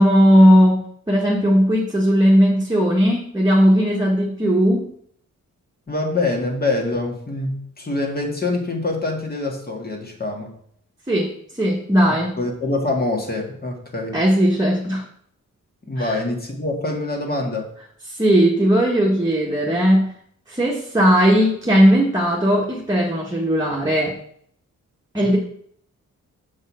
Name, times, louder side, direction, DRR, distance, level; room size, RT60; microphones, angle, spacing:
voice 1, 0.0-4.9 11.1-11.3 11.6-12.3 14.1-15.0 16.0-16.1 18.2-20.1 20.5-24.2 25.1-25.4, equal, 10° right, -3 dB, 1.4 m, -17 dB
voice 2, 5.9-10.6 12.1-14.2 15.9-17.7, left 2 dB, 30° left, 1 dB, 1.9 m, -25 dB
7.1 x 5.4 x 6.2 m, 0.65 s
wide cardioid pair, 130°, 31 cm